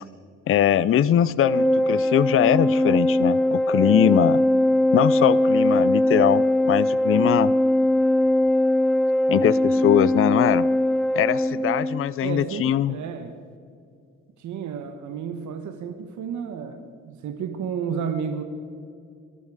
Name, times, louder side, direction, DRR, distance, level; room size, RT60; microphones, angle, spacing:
voice 1, 0.5-4.4 4.9-7.5 9.3-10.7 11.2-13.0, left 10 dB, 45° left, 19 dB, 0.5 m, -21 dB
Organ, 1.4-12.1, left 1 dB, 5° left, 0.6 m, -21 dB
voice 2, 12.2-13.4 14.4-18.4, right 7 dB, 70° right, 7 dB, 1.3 m, -32 dB
23.5 x 12.5 x 4.9 m, 2.3 s
cardioid pair, 90°, 30 cm